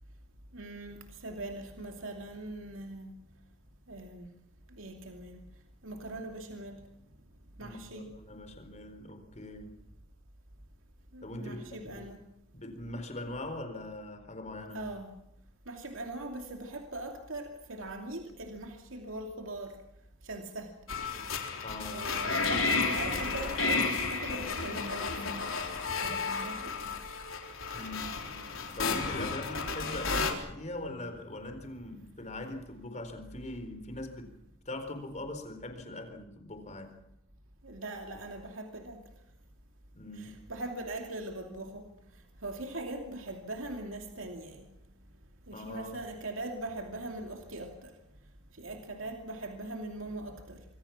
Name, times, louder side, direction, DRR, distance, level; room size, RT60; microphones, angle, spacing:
voice 1, 0.5-3.1 3.9-4.3 4.7-5.4 5.8-6.8 7.6-8.1 11.1-12.2 14.7-15.1 15.7-19.8 20.2-20.7 21.9-25.5 26.0-27.0 37.6-39.0 40.2-41.9 42.4-44.7 45.5-47.9 48.5-50.6, right 2 dB, 70° right, 3 dB, 2.7 m, -41 dB
voice 2, 7.6-9.7 11.2-12.1 12.5-14.9 21.6-22.1 27.7-34.3 34.7-36.9 39.9-40.4 45.5-46.0, left 1 dB, 35° left, 8 dB, 4.2 m, -41 dB
sound 1, 20.9-30.3, left 4 dB, 80° left, 3.9 m, -32 dB
25.5 x 24.5 x 6.0 m, 0.78 s
head